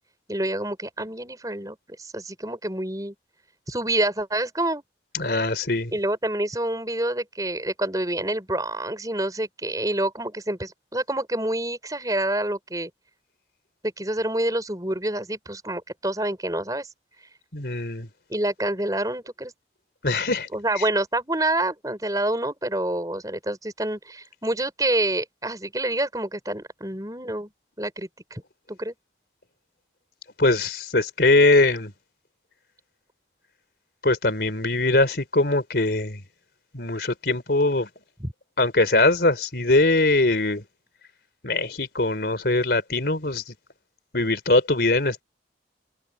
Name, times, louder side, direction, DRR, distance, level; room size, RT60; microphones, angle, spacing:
voice 1, 0.3-3.1 3.7-4.8 5.9-12.9 14.0-16.9 18.3-19.5 20.5-27.5 27.8-28.4 28.7-28.9 38.2-38.3, right 1 dB, 20° right, 5.6 m, -27 dB
voice 2, 5.1-5.9 17.5-18.1 20.0-20.5 20.7-20.8 30.4-31.9 34.0-36.2 36.7-37.9 38.6-40.6 41.4-43.5 44.1-45.2, left 2 dB, 60° left, 3.5 m, -21 dB
head